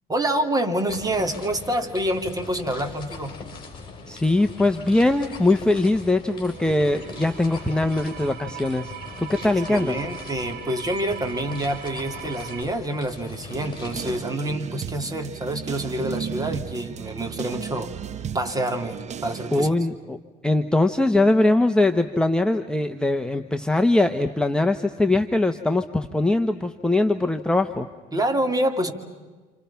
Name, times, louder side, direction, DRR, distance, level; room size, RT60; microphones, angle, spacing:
voice 1, 0.1-3.3 9.4-17.9 18.3-19.7 28.1-28.9, right 1 dB, 20° right, 5 dB, 3.1 m, -27 dB
sound 1, 0.9-14.2, left 4 dB, 30° left, 7.0 m, -41 dB
voice 2, 4.1-8.9 9.2-10.0 19.5-20.2 20.4-27.9, left 2 dB, 5° left, 5 dB, 1.1 m, -21 dB
sound 2, 6.2-12.6, right 9 dB, 80° right, 1.7 m, -40 dB
sound 3, 13.5-19.7, right 8 dB, 45° right, 0.8 m, -34 dB
28.5 x 28.5 x 5.8 m, 1.3 s
cardioid pair, 110°, 17 cm